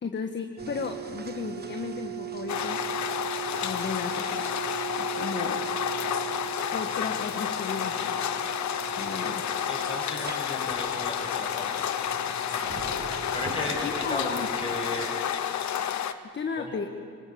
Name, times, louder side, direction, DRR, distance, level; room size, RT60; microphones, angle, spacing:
voice 1, 0.0-2.8 3.6-4.6 5.0-5.6 6.7-8.2 9.0-9.4 13.8-14.5 16.3-16.9, left 5 dB, 35° left, 4 dB, 1.5 m, -34 dB
sound 1, 0.6-15.2, right 11 dB, 35° right, 1.4 m, -39 dB
sound 2, 2.5-16.1, left 9 dB, 70° left, 1.1 m, -30 dB
voice 2, 9.7-11.8 12.5-13.0 13.3-15.1 16.6-16.8, left 2 dB, 20° left, -1 dB, 7.1 m, -36 dB
23.5 x 19.5 x 7.5 m, 2.4 s
cardioid pair, 90°, 30 cm